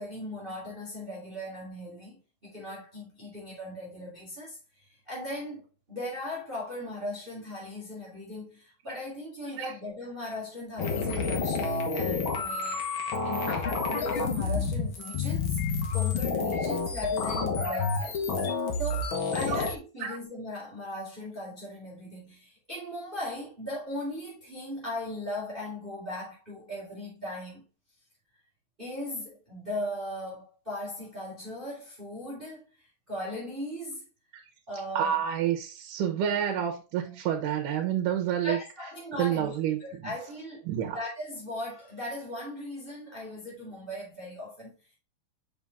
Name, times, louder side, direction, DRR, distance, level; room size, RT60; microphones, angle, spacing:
voice 1, 0.0-12.9 13.2-15.6 15.9-18.2 18.8-27.7 28.8-34.0 34.7-35.2 38.4-39.5 39.8-44.9, left 1 dB, 15° right, 2.6 m, -38 dB
sound 1, 10.8-19.8, left 4 dB, 55° left, 1.6 m, -29 dB
voice 2, 35.0-38.6 39.2-40.1 40.7-41.0, right 9 dB, 80° right, 2.5 m, -29 dB
5.6 x 5.6 x 3.5 m
omnidirectional pair, 3.7 m